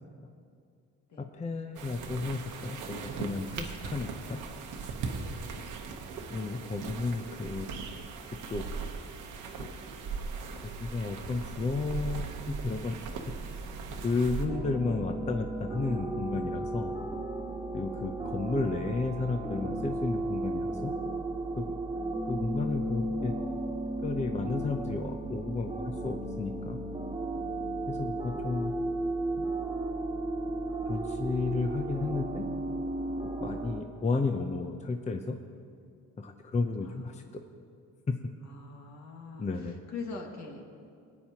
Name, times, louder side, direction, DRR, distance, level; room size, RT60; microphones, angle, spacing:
voice 1, 1.2-4.4 6.3-7.8 8.5-8.6 9.6-9.7 10.6-13.1 14.0-16.9 17.7-20.9 21.6-21.8 22.2-23.3 24.0-26.8 27.9-28.7 29.4-29.5 30.9-32.4 33.4-35.4 36.2-37.4 38.1-38.2 39.4-39.8, left 3 dB, 25° left, 5 dB, 0.6 m, -33 dB
sound 1, 1.7-14.5, right 5 dB, 85° right, 1.1 m, -39 dB
voice 2, 5.2-5.6 36.8-37.2 38.4-40.6, left 4 dB, 65° left, 0 dB, 1.9 m, -43 dB
sound 2, 14.5-33.8, right 2 dB, 15° right, 1.4 m, -34 dB
21.0 x 9.0 x 2.9 m, 2.3 s
cardioid pair, 90°, 30 cm